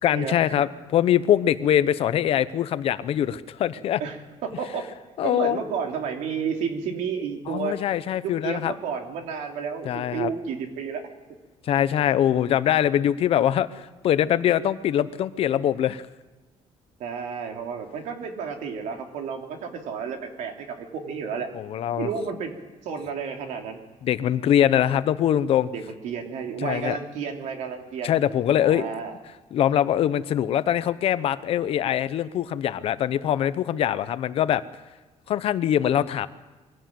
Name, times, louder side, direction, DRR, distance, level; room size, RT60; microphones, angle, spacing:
voice 1, 0.0-4.0 5.2-5.6 7.5-8.7 9.8-10.3 11.7-16.0 21.5-22.1 24.0-25.7 26.6-27.0 28.0-28.9 29.5-34.6 35.3-36.3, left 10 dB, 50° left, 14 dB, 0.8 m, -23 dB
voice 2, 4.0-4.9 5.2-7.8 8.4-11.0 17.0-21.5 22.0-22.5 22.8-23.8 25.7-28.2 28.5-29.2, right 6 dB, 85° right, 3 dB, 3.0 m, -31 dB
23.0 x 16.5 x 7.7 m, 1.3 s
cardioid pair, 175°, 12 cm